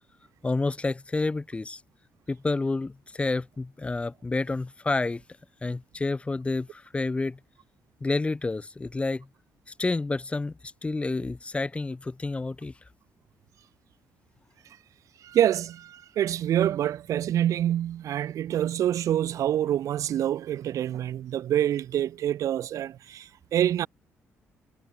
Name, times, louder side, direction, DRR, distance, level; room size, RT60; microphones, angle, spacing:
voice 1, 0.4-1.8 2.3-5.2 5.6-7.4 8.0-9.3 9.8-10.5 10.8-12.7, left 3 dB, 20° left, 1.3 m, -29 dB
voice 2, 15.2-23.9, right 11 dB, 75° right, 1.8 m, -26 dB
cardioid pair, 90°, 6 cm